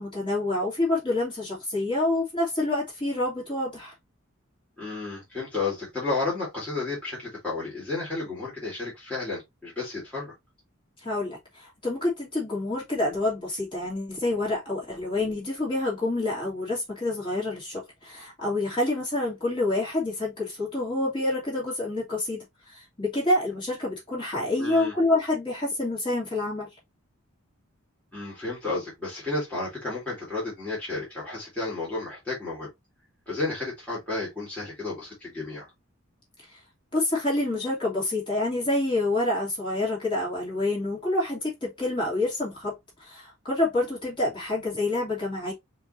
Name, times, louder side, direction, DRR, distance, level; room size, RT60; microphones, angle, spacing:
voice 1, 0.0-3.9 11.0-26.7 36.5-36.6 36.9-45.5, left 2 dB, 25° left, 2.8 m, -27 dB
voice 2, 4.8-10.3 24.6-24.9 28.1-32.7 33.3-35.7, left 3 dB, 5° left, 2.5 m, -32 dB
5.5 x 3.1 x 2.7 m
head